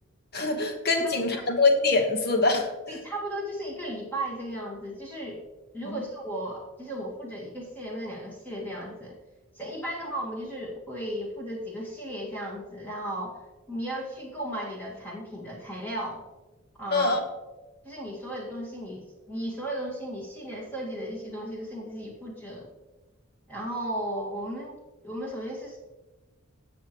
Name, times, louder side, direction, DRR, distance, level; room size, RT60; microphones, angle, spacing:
voice 1, 0.3-3.0 5.8-6.0 16.9-17.2, left 3 dB, 45° left, 4 dB, 1.3 m, -24 dB
voice 2, 1.0-1.5 2.9-5.4 5.7-9.2 9.5-13.4 13.7-16.3 16.8-17.2 17.8-22.7 23.5-25.8, right 1 dB, 10° left, -4 dB, 1.9 m, -35 dB
16.5 x 6.6 x 3.1 m, 1.1 s
head